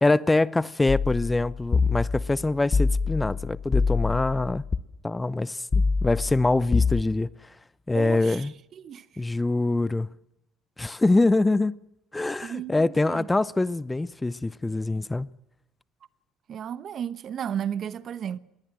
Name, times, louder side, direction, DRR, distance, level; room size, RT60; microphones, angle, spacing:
voice 1, 0.0-4.6 5.0-7.5 7.9-8.5 9.2-10.1 10.8-11.7 12.1-15.3, left 2 dB, 15° left, 0.7 m, -24 dB
sound 1, 0.9-4.8 5.7-7.0, left 4 dB, 30° left, 1.1 m, -25 dB
voice 2, 7.9-8.5 8.8-9.2 12.4-13.3 16.5-18.4, right 9 dB, 55° right, 1.0 m, -34 dB
21.0 x 19.5 x 7.6 m
supercardioid pair, 75°, 0 cm